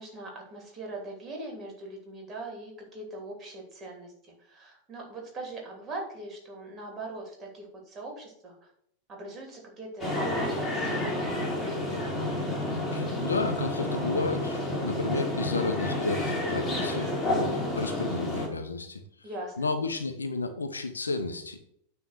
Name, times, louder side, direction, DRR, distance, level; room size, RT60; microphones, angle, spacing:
voice 1, 0.0-8.7 9.1-12.0 19.2-19.7, right 2 dB, 25° right, 1 dB, 2.8 m, -41 dB
sound 1, 10.0-18.5, left 1 dB, 15° left, 3.2 m, -30 dB
voice 2, 12.9-19.3 19.6-21.6, left 3 dB, 75° left, 7 dB, 0.9 m, -32 dB
9.2 x 3.5 x 6.4 m, 0.71 s
figure-of-eight pair, 90°, 0 cm